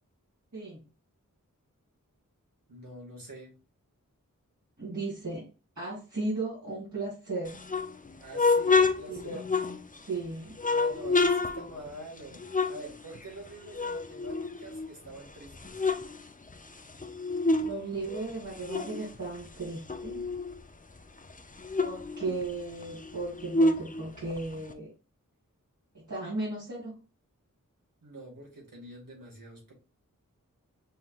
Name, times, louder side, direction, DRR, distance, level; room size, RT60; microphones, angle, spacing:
voice 1, 2.7-3.5 8.2-9.4 10.7-15.8 28.0-29.7, right 1 dB, 85° right, -2 dB, 1.9 m, -46 dB
voice 2, 4.8-5.5 5.8-7.6 8.7-9.4 10.1-10.6 17.6-20.3 21.8-24.9 25.9-26.9, right 3 dB, 60° right, -9 dB, 2.4 m, -36 dB
sound 1, 7.5-10.1 10.6-13.5 13.7-15.1 15.5-17.7 18.0-20.6 21.0-21.1 21.3-24.7, left 3 dB, 25° left, 0.5 m, -29 dB
5.4 x 3.2 x 2.4 m, 0.31 s
wide cardioid pair, 50°, 33 cm